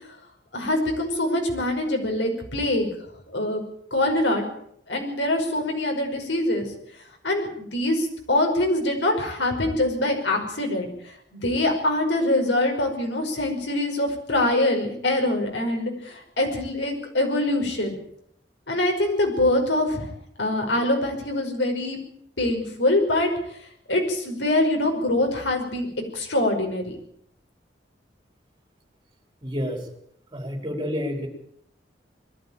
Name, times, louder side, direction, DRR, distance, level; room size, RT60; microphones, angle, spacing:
voice 1, 0.5-2.9 3.3-3.6 3.9-4.4 4.9-6.7 7.2-18.0 18.7-20.1 20.4-22.0 22.4-23.3 23.9-25.9 26.1-26.9, left 1 dB, 85° left, 3 dB, 5.6 m, -24 dB
voice 2, 29.4-29.9 30.3-31.3, equal, 25° right, 3 dB, 4.6 m, -29 dB
21.5 x 13.5 x 8.9 m, 0.72 s
head